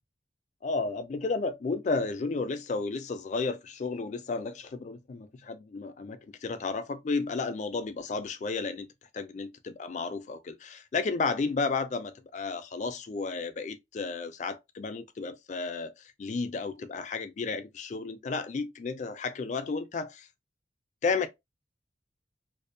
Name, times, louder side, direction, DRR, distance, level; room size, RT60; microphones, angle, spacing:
voice 1, 0.6-8.9 9.1-20.3 21.0-21.3, left 4 dB, 40° left, 0.3 m, -32 dB
2.5 x 2.0 x 2.6 m
head